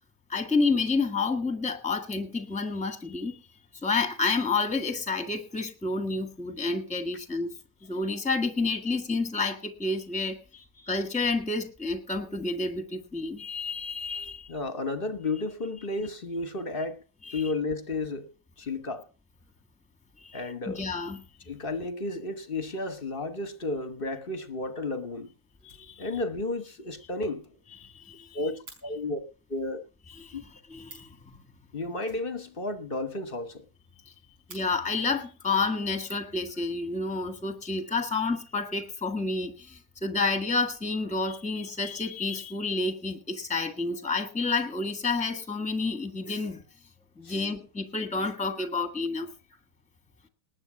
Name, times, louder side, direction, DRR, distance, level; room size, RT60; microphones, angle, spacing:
voice 1, 0.3-3.4 3.8-7.5 7.8-14.5 17.3-17.4 20.2-20.4 20.7-21.2 25.6-26.1 27.8-28.4 30.2-30.4 30.7-31.4 34.5-46.6 47.2-49.3, left 3 dB, 5° left, 1.3 m, -30 dB
voice 2, 14.5-17.0 17.3-18.3 18.6-19.1 20.3-20.9 21.5-25.3 26.0-27.6 28.3-29.2 29.5-29.8 30.3-30.4 31.7-33.6 47.2-47.5 48.6-48.7, left 2 dB, 35° left, 1.1 m, -33 dB
Fire, 25.6-26.4 26.7-26.8 27.2-27.3 27.5-27.6 27.8-28.8 30.5-30.6 30.8-31.2 32.0-32.9 33.2-33.3 33.6-33.7 34.1-34.6 35.6-35.8 36.4-37.0, right 2 dB, 80° right, 6.2 m, -52 dB
19.5 x 8.2 x 6.0 m
omnidirectional pair, 2.2 m